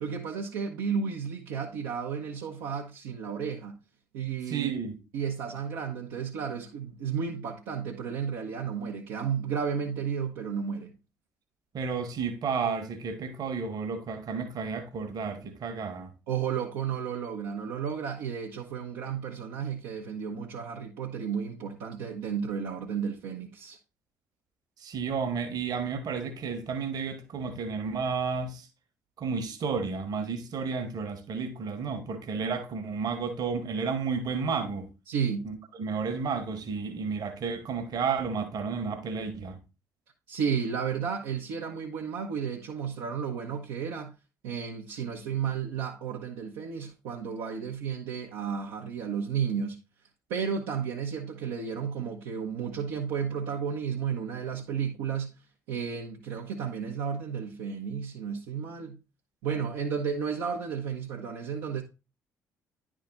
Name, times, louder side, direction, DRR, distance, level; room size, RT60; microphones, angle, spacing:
voice 1, 0.0-3.7 4.1-4.7 5.1-10.9 16.3-23.8 35.1-35.4 40.3-44.1 44.4-49.8 50.3-55.3 55.7-59.0 59.4-61.8, right 7 dB, 65° right, 1.0 m, -33 dB
voice 2, 4.5-5.0 11.7-16.1 24.8-28.6 29.2-34.9 35.4-39.6, right 5 dB, 50° right, 1.4 m, -32 dB
10.5 x 3.8 x 3.9 m
figure-of-eight pair, 45°, 9 cm